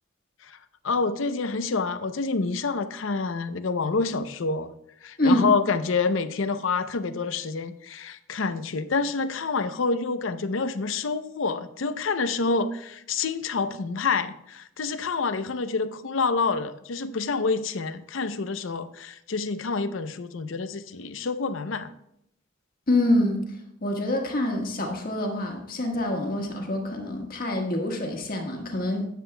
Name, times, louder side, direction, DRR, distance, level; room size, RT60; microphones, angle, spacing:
voice 1, 0.8-4.7 5.0-21.9, left 4 dB, 80° left, 11 dB, 0.6 m, -27 dB
voice 2, 22.9-23.4 23.8-29.1, left 1 dB, 45° left, 2 dB, 1.5 m, -26 dB
12.5 x 9.2 x 2.2 m, 0.77 s
head